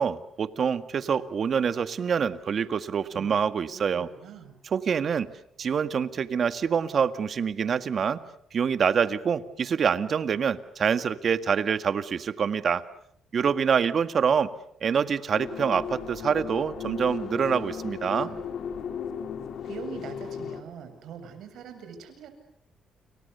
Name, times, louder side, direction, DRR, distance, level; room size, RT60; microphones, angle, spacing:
voice 1, 0.0-4.1 4.7-5.3 5.6-8.2 8.5-12.8 13.3-14.5 14.8-18.3, right 7 dB, 50° right, 11 dB, 1.8 m, -26 dB
voice 2, 3.7-4.6 17.7-18.4 19.6-22.3, right 7 dB, 75° right, 8 dB, 7.7 m, -43 dB
sound 1, 15.3-20.6, left 7 dB, 70° left, 3.5 m, -35 dB
30.0 x 28.5 x 6.9 m, 0.68 s
cardioid pair, 90°, 0 cm